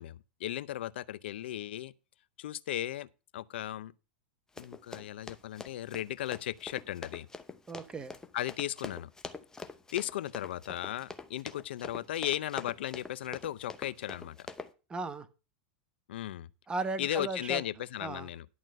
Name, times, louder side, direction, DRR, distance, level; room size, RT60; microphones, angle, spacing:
voice 1, 0.0-1.9 2.4-3.9 4.6-7.3 8.3-9.1 9.9-14.5 16.1-16.5 17.0-18.5, left 13 dB, 75° left, 0.6 m, -36 dB
Run, 4.6-14.7, left 3 dB, 10° left, 0.8 m, -45 dB
voice 2, 7.7-8.2 14.9-15.3 16.7-17.6 18.0-18.3, right 3 dB, 15° right, 1.0 m, -36 dB
11.0 x 3.9 x 7.7 m
hypercardioid pair, 125°, 6 cm